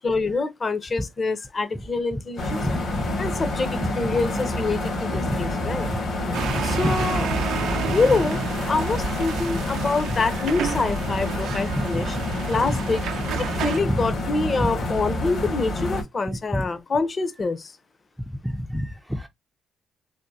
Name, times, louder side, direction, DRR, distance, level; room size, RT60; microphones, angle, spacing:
voice 1, 0.0-2.6 3.2-5.9 6.6-7.3 7.9-8.4 8.7-12.2 12.5-13.0 13.4-17.7, left 3 dB, 35° left, 0.7 m, -26 dB
sound 1, 2.4-16.0, left 1 dB, 85° left, 1.9 m, -28 dB
sound 2, 6.3-13.8, right 7 dB, 80° right, 0.4 m, -31 dB
voice 2, 6.4-7.0 7.9-8.0 11.8-12.2 13.9-14.0 16.5-16.6 18.4-19.3, equal, 5° right, 0.4 m, -28 dB
3.6 x 2.4 x 2.7 m
cardioid pair, 90°, 0 cm